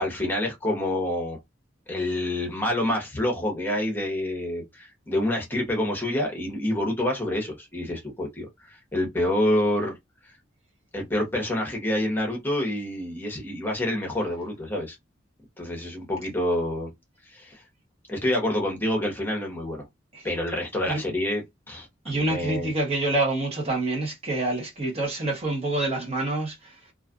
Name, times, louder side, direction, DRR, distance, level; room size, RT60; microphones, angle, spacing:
voice 1, 0.0-1.4 1.9-9.9 10.2-10.3 10.9-15.0 15.6-16.9 17.3-17.6 18.1-19.8 20.2-22.7, left 1 dB, 10° left, 0.8 m, -27 dB
voice 2, 22.0-26.7, right 2 dB, 35° right, 0.9 m, -27 dB
2.5 x 2.4 x 2.4 m
head